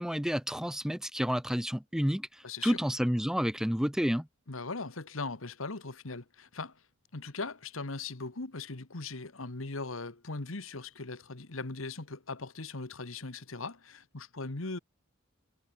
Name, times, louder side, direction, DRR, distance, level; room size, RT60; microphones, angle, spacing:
voice 1, 0.0-4.3, equal, 5° right, 1.0 m, -30 dB
voice 2, 2.4-2.8 4.5-6.8 7.1-14.8, left 3 dB, 75° left, 1.6 m, -39 dB
head